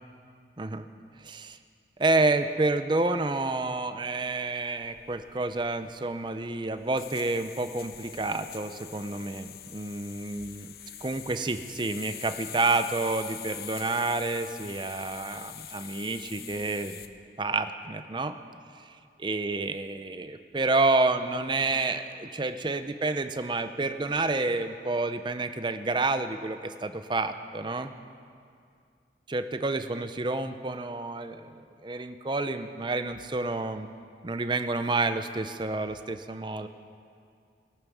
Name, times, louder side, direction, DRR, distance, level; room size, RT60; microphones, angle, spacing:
voice 1, 1.2-1.6 2.0-10.7 11.0-17.0 17.4-18.4 18.8-27.9 29.3-33.9 34.2-36.7, right 3 dB, 25° right, 9 dB, 0.5 m, -29 dB
sound 1, 4.8-17.1, left 11 dB, 55° left, 0.6 m, -44 dB
20.5 x 9.0 x 6.2 m, 2.3 s
head